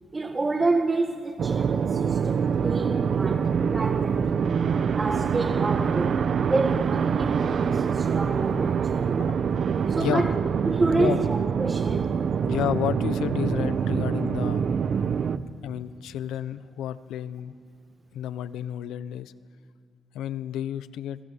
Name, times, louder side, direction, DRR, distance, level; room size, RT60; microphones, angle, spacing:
voice 1, 0.1-4.5 4.9-9.3 9.9-10.4 10.6-12.3 15.3-15.4, right 3 dB, 25° right, 1.8 m, -29 dB
sound 1, 1.4-15.4, right 6 dB, 55° right, 1.0 m, -25 dB
voice 2, 12.4-14.7 15.6-17.6 18.1-19.3 20.1-21.2, left 11 dB, 85° left, 0.9 m, -31 dB
27.5 x 25.0 x 8.4 m
cardioid pair, 90°, 0 cm